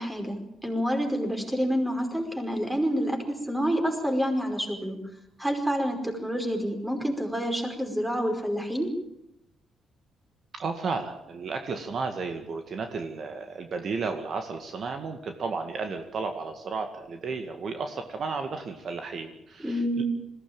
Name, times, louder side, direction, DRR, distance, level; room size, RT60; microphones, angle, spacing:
voice 1, 0.0-5.0 5.4-8.9 19.6-20.0, equal, 10° right, 4 dB, 5.2 m, -28 dB
voice 2, 10.5-20.0, right 4 dB, 55° right, 6 dB, 2.0 m, -33 dB
21.0 x 16.5 x 8.9 m, 0.82 s
cardioid pair, 90°, 0 cm